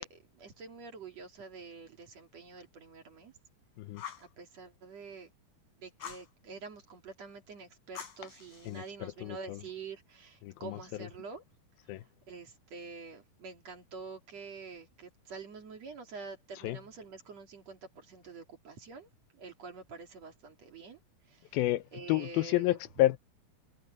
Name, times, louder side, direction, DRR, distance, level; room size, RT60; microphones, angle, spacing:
voice 1, 0.0-3.3 4.2-5.3 5.8-11.4 11.9-12.0 12.3-19.1 19.3-21.0 21.3-21.6 21.9-22.8, right 4 dB, 45° right, 3.7 m, -47 dB
Fire, 4.0-4.3 6.0-6.3 8.0-8.9, left 9 dB, 60° left, 6.2 m, -45 dB
voice 2, 8.7-9.6 10.4-11.1 11.9-12.0 16.6-16.8 21.5-23.2, left 16 dB, 85° left, 2.6 m, -30 dB
omnidirectional pair, 4.3 m